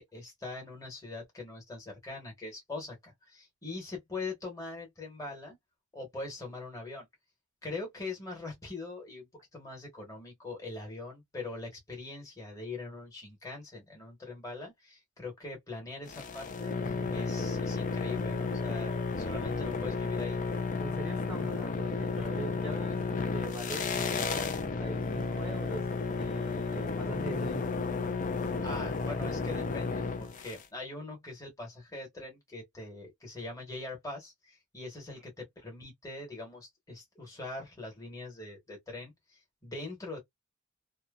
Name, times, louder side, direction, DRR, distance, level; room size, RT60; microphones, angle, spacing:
voice 1, 0.0-5.6 5.9-7.1 7.6-20.4 28.4-40.2, left 3 dB, 15° left, 1.2 m, -42 dB
sound 1, 16.1-30.6, left 4 dB, 40° left, 0.4 m, -33 dB
voice 2, 16.8-17.2 20.8-27.7 35.1-35.2, right 2 dB, 10° right, 0.7 m, -43 dB
2.8 x 2.2 x 2.3 m
head